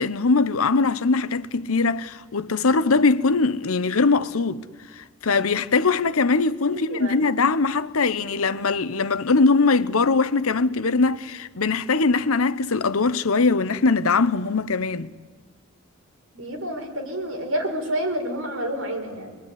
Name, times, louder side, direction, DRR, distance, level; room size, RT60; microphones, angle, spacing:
voice 1, 0.0-4.6 5.0-15.1, left 4 dB, 85° left, 0.9 m, -21 dB
voice 2, 6.7-7.2 16.3-19.3, right 1 dB, 70° right, 5.6 m, -29 dB
26.0 x 22.0 x 10.0 m
head